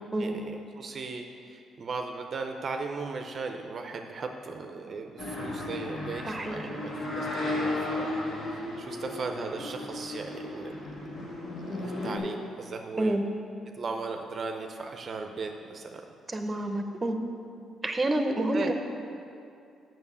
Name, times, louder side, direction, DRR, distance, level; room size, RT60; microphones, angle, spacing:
voice 1, 0.2-8.1 8.5-13.2 13.8-16.0 18.5-18.7, right 4 dB, 50° right, 4 dB, 0.6 m, -37 dB
sound 1, 5.2-12.2, left 2 dB, 65° left, 2.1 m, -34 dB
voice 2, 6.3-6.7 13.0-13.2 16.3-17.2 17.8-18.7, right 1 dB, 20° right, 5 dB, 0.8 m, -28 dB
7.1 x 6.1 x 6.9 m, 2.6 s
cardioid pair, 90°, 0 cm